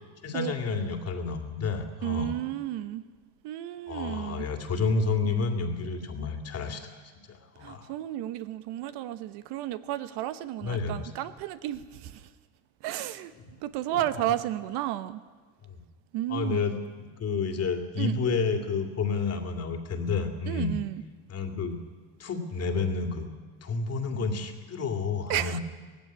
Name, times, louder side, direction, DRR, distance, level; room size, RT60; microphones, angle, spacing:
voice 1, 0.2-2.3 3.9-7.9 10.6-11.1 13.4-13.5 13.9-14.0 15.7-15.8 16.3-20.8 21.3-21.8 22.2-23.3 23.6-25.6, left 4 dB, 30° left, 5 dB, 2.5 m, -30 dB
voice 2, 2.0-3.0 3.4-4.5 7.6-12.3 12.8-13.3 13.6-15.2 16.1-16.6 18.0-18.2 20.5-21.0 25.3-25.6, right 13 dB, 60° right, 12 dB, 1.0 m, -32 dB
17.5 x 15.5 x 9.7 m, 1.5 s
supercardioid pair, 125°, 47 cm